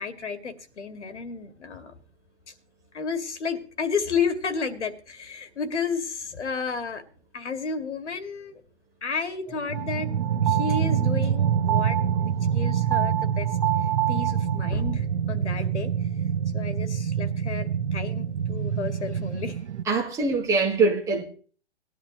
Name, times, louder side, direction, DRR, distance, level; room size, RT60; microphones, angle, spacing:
voice 1, 0.0-1.9 2.9-7.0 7.3-8.6 9.0-10.1 10.4-13.5 14.1-15.9 16.5-19.6, left 5 dB, 90° left, 2.2 m, -32 dB
sound 1, 9.7-14.9, right 15 dB, 30° right, 0.5 m, -30 dB
sound 2, 9.7-19.8, right 8 dB, 80° right, 0.9 m, -26 dB
voice 2, 19.9-21.2, right 3 dB, 10° right, 1.5 m, -23 dB
19.0 x 10.5 x 3.0 m
hypercardioid pair, 160°, 34 cm